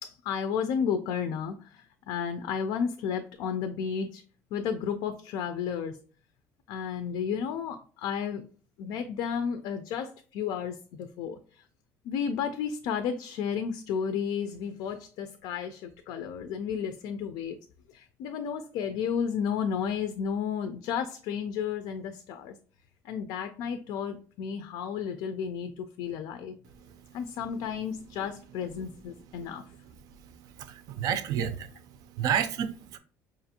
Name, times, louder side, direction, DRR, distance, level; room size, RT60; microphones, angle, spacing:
voice 1, 0.0-4.2 4.5-6.0 6.7-8.4 8.8-11.7 12.0-17.6 17.9-22.5 23.0-26.6 27.1-29.6, left 7 dB, 75° left, 0.4 m, -32 dB
voice 2, 30.3-31.8 32.1-33.0, right 8 dB, 60° right, 0.5 m, -31 dB
5.0 x 2.5 x 2.7 m
cardioid pair, 145°, 7 cm